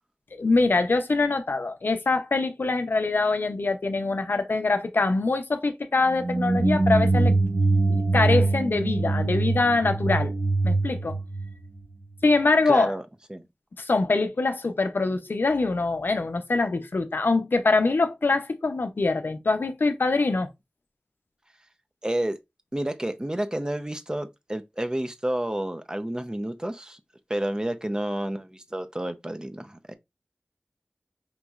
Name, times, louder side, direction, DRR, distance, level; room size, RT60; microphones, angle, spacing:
voice 1, 0.3-7.3 7.9-10.3 10.6-11.2 12.2-12.9 13.8-20.5, left 3 dB, 85° left, 0.5 m, -24 dB
sound 1, 6.1-12.1, right 2 dB, 60° right, 0.8 m, -23 dB
voice 2, 12.7-13.0 13.3-13.4 22.0-22.4 22.7-27.0 27.3-29.9, right 1 dB, 20° right, 0.6 m, -30 dB
5.2 x 3.0 x 2.3 m
wide cardioid pair, 45°, 3 cm